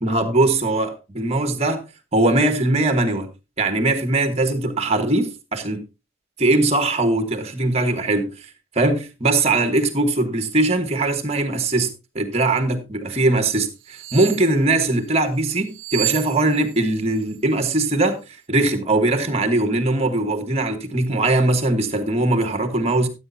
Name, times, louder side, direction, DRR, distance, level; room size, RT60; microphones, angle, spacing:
voice 1, 0.0-1.8 2.1-3.3 3.6-5.8 6.4-8.3 8.7-18.2 18.5-23.1, right 2 dB, 30° right, 1.3 m, -20 dB
sound 1, 13.8-14.5 15.7-16.9 17.2-17.4, right 13 dB, 55° right, 0.8 m, -29 dB
14.5 x 8.4 x 2.7 m
head